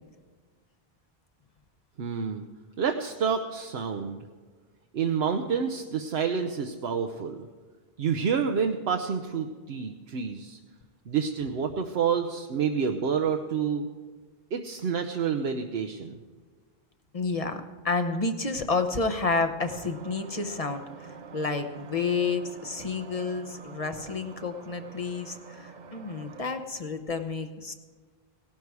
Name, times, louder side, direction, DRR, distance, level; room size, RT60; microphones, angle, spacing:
voice 1, 2.0-2.4 2.8-4.3 4.9-7.5 8.0-10.6 11.1-13.9 14.5-16.2, right 6 dB, 80° right, 4 dB, 1.0 m, -28 dB
voice 2, 17.1-21.1 21.3-27.7, left 4 dB, 40° left, 7 dB, 0.9 m, -30 dB
sound 1, 19.6-26.5, right 5 dB, 50° right, 0.7 m, -45 dB
17.0 x 12.0 x 4.7 m, 1.4 s
omnidirectional pair, 1.0 m